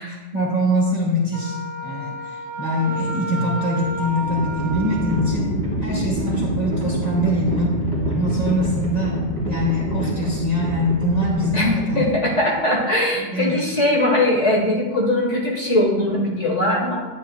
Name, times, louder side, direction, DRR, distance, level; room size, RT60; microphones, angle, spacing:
voice 1, 0.0-5.5 5.8-7.8 8.1-12.0 13.3-13.5, equal, 25° right, -3 dB, 1.4 m, -23 dB
Wind instrument woodwind instrument, 1.3-5.5, right 1 dB, 40° right, 2.8 m, -31 dB
Livestock farm animals working animals, 3.5-12.5, right 1 dB, 25° left, 2.6 m, -26 dB
voice 2, 11.9-17.1, left 1 dB, 45° left, -2 dB, 1.5 m, -20 dB
9.9 x 9.3 x 2.3 m, 1.2 s
omnidirectional pair, 1.9 m